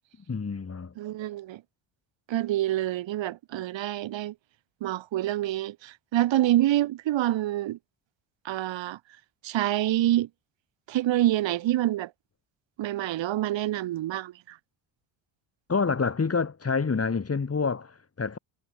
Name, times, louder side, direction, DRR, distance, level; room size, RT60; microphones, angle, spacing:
voice 1, 0.3-0.9 15.7-18.4, left 5 dB, 30° left, 4.5 m, -27 dB
voice 2, 1.0-1.6 2.3-4.3 4.8-7.8 8.4-9.0 9.4-10.3 10.9-12.1 12.8-14.6, right 14 dB, 70° right, 2.5 m, -27 dB
supercardioid pair, 75°, 46 cm